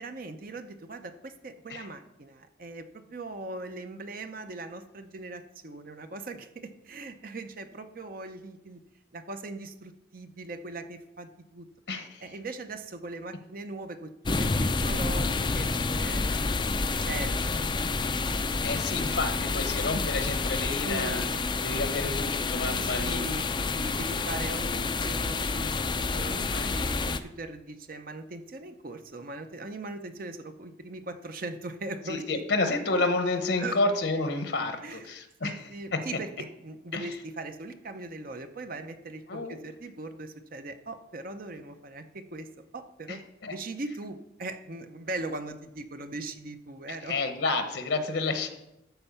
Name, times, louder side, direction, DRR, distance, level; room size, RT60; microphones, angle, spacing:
voice 1, 0.0-8.8 9.1-11.7 12.2-18.1 20.8-21.4 22.5-26.4 26.7-32.4 33.6-33.8 34.8-47.2, right 2 dB, 45° right, 8 dB, 0.7 m, -40 dB
voice 2, 11.9-12.2 18.6-21.2 21.6-23.3 26.2-26.7 32.1-36.0 36.9-37.2 39.3-39.6 43.1-43.2 43.4-43.6 47.0-48.5, left 3 dB, 65° left, 7 dB, 1.0 m, -30 dB
sound 1, 14.2-27.2, left 3 dB, 25° left, 0.4 m, -29 dB
13.0 x 4.5 x 6.9 m, 0.90 s
head